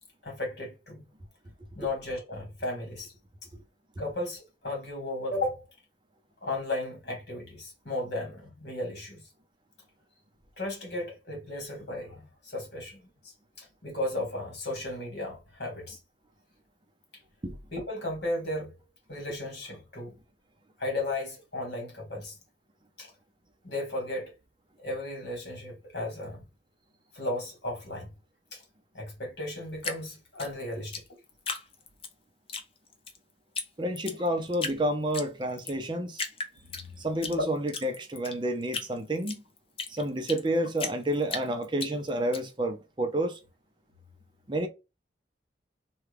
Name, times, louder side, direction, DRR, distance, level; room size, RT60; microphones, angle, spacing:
voice 1, 0.2-1.0 1.8-3.1 4.0-5.6 6.4-9.2 10.6-16.0 17.7-18.7 19.1-20.1 20.8-22.4 23.0-23.1 23.6-24.3 24.8-26.4 27.1-28.1 28.5-28.6 28.9-30.9, left 2 dB, 70° left, 1.9 m, -35 dB
Drip, 29.8-32.1 32.5-33.2 33.6-33.7 34.0-34.8 35.1-35.8 36.1-37.4 37.7-40.5 40.8-42.4, left 4 dB, 30° left, 0.6 m, -35 dB
voice 2, 33.8-36.2 37.0-39.4 39.9-43.4 44.5-44.7, right 1 dB, 25° right, 0.6 m, -29 dB
3.4 x 2.3 x 3.3 m
head